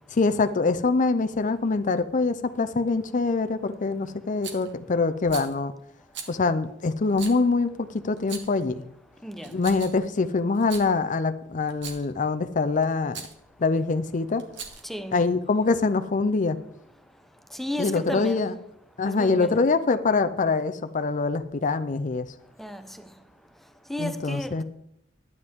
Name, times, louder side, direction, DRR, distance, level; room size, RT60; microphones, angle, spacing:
voice 1, 0.1-5.7 6.3-8.9 9.5-13.2 13.6-14.4 15.1-16.6 17.8-18.5 19.0-22.3 24.0-24.6, left 3 dB, 45° left, 0.5 m, -24 dB
Rattle, 4.4-4.7 5.2-5.5 6.1-6.3 7.1-7.4 8.2-8.6 9.4-10.1 10.5-10.9 11.7-12.1 13.1-13.4 14.4-14.9, right 6 dB, 65° right, 1.8 m, -39 dB
voice 2, 14.8-15.2 17.5-18.4 19.1-19.7 22.6-23.1 23.9-24.6, left 1 dB, ahead, 0.7 m, -33 dB
12.0 x 9.4 x 3.6 m
head